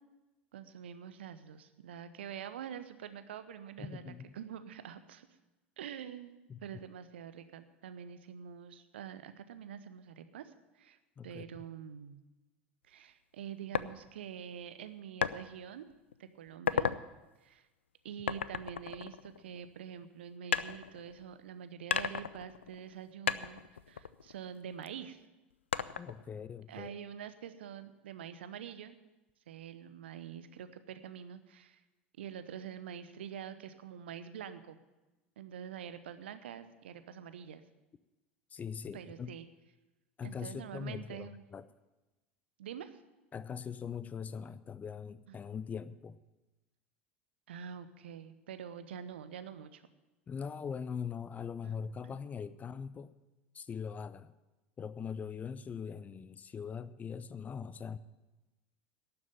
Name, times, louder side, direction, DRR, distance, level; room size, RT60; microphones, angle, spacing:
voice 1, 0.5-5.3 5.8-11.0 11.2-12.2 12.9-15.9 16.2-16.9 17.4-17.6 18.0-23.6 23.9-25.2 26.7-29.0 29.5-31.8 32.2-34.8 35.4-37.6 38.9-39.5 40.2-41.4 42.6-43.0 45.3-45.4 47.5-49.8 51.6-51.7 52.0-52.2, right 8 dB, 70° right, 12 dB, 0.8 m, -46 dB
voice 2, 3.8-4.3 6.5-6.6 11.2-11.6 26.0-26.9 38.5-39.3 40.2-41.6 43.3-46.2 50.3-53.1 53.5-54.3 54.8-58.0, left 6 dB, 25° left, 16 dB, 0.5 m, -41 dB
sound 1, 13.7-13.9 15.2-15.4 15.9-16.1 16.5-17.0 18.3-19.8 20.5-21.4 21.9-23.0 23.3-24.9 25.7-26.3, left 7 dB, 80° left, 0.4 m, -34 dB
11.5 x 7.1 x 8.8 m, 1.1 s
figure-of-eight pair, 75°, 6 cm